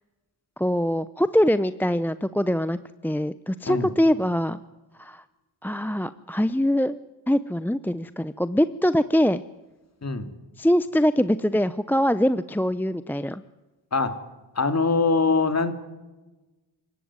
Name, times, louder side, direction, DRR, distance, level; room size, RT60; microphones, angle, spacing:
voice 1, 0.6-4.6 5.0-5.2 5.6-7.0 7.3-9.4 10.6-13.4, equal, 5° left, 14 dB, 0.7 m, -23 dB
voice 2, 14.5-15.7, left 4 dB, 35° left, 9 dB, 2.9 m, -23 dB
26.5 x 16.0 x 9.7 m, 1.1 s
cardioid pair, 80°, 45 cm